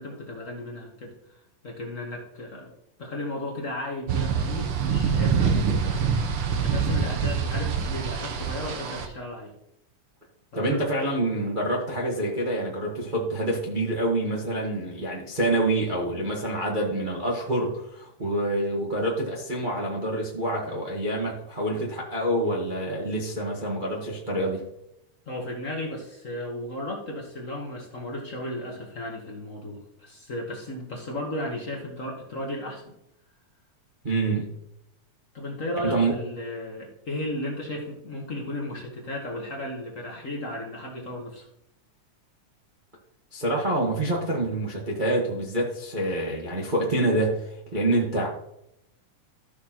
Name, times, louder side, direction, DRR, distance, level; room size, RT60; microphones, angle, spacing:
voice 1, 0.0-2.7 3.0-6.0 6.5-9.5 10.5-10.9 25.3-32.9 35.3-41.5, left 1 dB, 55° left, -1 dB, 0.9 m, -35 dB
sound 1, 4.1-9.1, right 6 dB, 75° right, 1.3 m, -25 dB
voice 2, 10.5-24.6 34.0-34.5 35.8-36.1 43.3-48.3, right 1 dB, 50° right, -3 dB, 0.5 m, -27 dB
13.5 x 6.5 x 3.0 m, 0.79 s
omnidirectional pair, 3.5 m